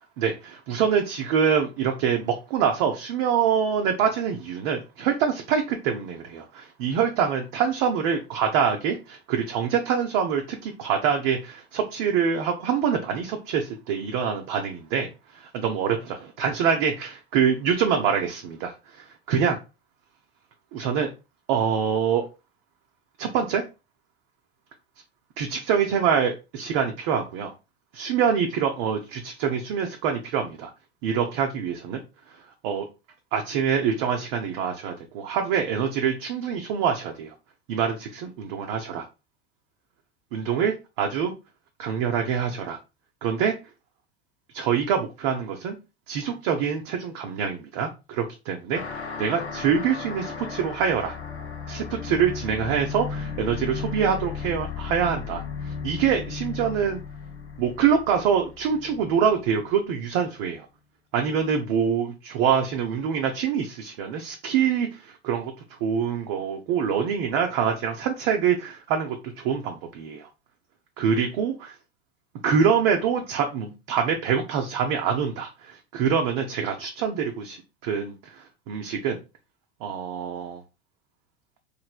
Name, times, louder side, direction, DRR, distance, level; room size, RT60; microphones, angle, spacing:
voice 1, 0.2-19.6 20.7-21.1 21.5-22.3 23.2-23.6 25.4-27.5 27.9-30.7 31.0-32.0 32.6-32.9 33.3-37.3 37.7-39.0 40.3-41.3 41.8-42.8 43.2-43.5 44.5-45.8 46.1-51.1 51.7-57.0 57.6-60.7 61.1-65.5 65.8-70.3 71.0-71.8 72.4-79.2 79.8-80.6, right 7 dB, 50° right, 3 dB, 0.5 m, -25 dB
sound 1, 48.7-59.7, left 6 dB, 85° left, 0.6 m, -35 dB
3.1 x 2.5 x 2.3 m, 0.28 s
figure-of-eight pair, 85°, 32 cm